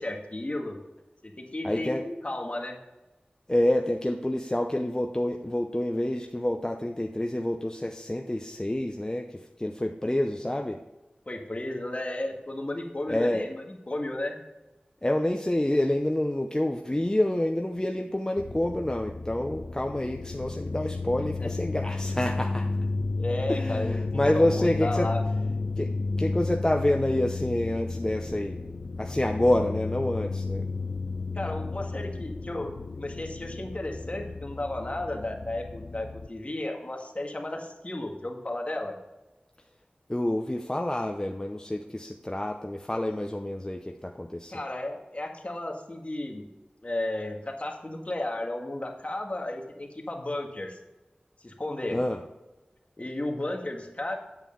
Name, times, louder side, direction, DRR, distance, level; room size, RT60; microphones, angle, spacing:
voice 1, 0.0-0.8 1.2-2.8 11.3-14.4 21.4-21.5 23.2-25.2 31.3-39.0 44.5-46.5 46.8-50.8 51.4-52.0 53.0-54.1, left 1 dB, 40° left, 2 dB, 1.6 m, -33 dB
voice 2, 1.6-2.0 3.5-10.8 13.1-13.5 15.0-22.7 23.5-25.1 25.8-25.9 26.2-28.6 29.0-30.7 40.1-44.5 51.9-52.2, left 1 dB, 20° left, 3 dB, 0.7 m, -28 dB
sound 1, 18.4-36.3, left 3 dB, 65° left, 0.5 m, -32 dB
8.6 x 8.1 x 3.8 m, 1.1 s
wide cardioid pair, 45°, 3 cm